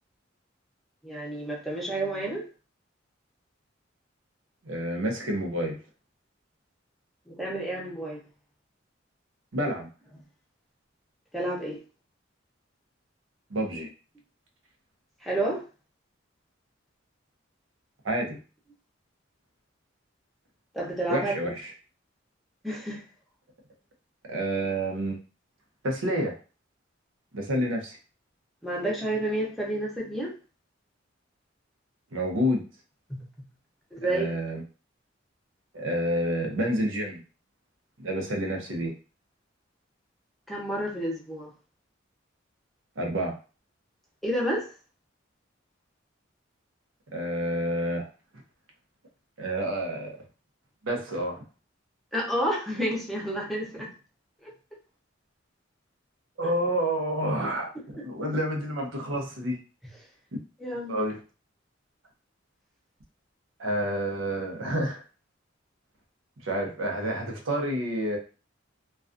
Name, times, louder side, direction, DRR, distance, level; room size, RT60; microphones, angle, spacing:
voice 1, 1.0-2.5 7.3-8.2 11.3-11.8 15.2-15.6 20.7-21.5 22.6-23.0 28.6-30.3 33.9-34.3 40.5-41.5 44.2-44.7 52.1-53.9 54.4-54.5 56.4-56.5 60.6-61.0, right 1 dB, ahead, -3 dB, 0.6 m, -30 dB
voice 2, 4.6-5.8 9.5-9.9 13.5-13.9 18.0-18.4 21.1-21.7 24.3-25.2 25.8-26.4 27.3-28.0 32.1-32.6 34.0-34.6 35.7-37.2 38.0-38.9 43.0-43.3 47.1-48.1 49.4-50.2 50.8-51.4 56.4-57.7 58.0-59.6 60.9-61.2 63.6-65.0 66.4-68.2, equal, 90° right, 1 dB, 0.7 m, -29 dB
2.3 x 2.3 x 2.4 m, 0.35 s
head